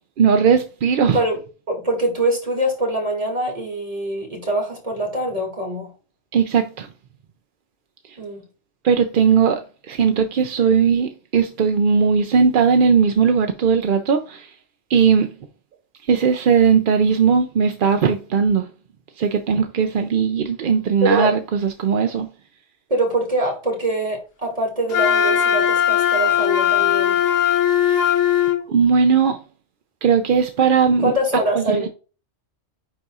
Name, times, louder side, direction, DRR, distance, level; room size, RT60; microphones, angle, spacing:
voice 1, 0.2-1.2 6.3-6.9 8.8-9.6 9.9-14.5 14.9-15.3 16.1-18.7 19.2-22.3 27.8-28.0 28.7-29.4 30.0-31.1 31.7-31.9, right 6 dB, 55° right, 0.6 m, -18 dB
voice 2, 1.7-5.9 8.2-8.5 21.0-21.3 22.9-27.2 31.0-31.9, right 1 dB, 30° right, 2.3 m, -23 dB
Wind instrument woodwind instrument, 24.9-28.6, left 10 dB, 85° left, 1.4 m, -18 dB
10.0 x 4.0 x 2.4 m
omnidirectional pair, 1.3 m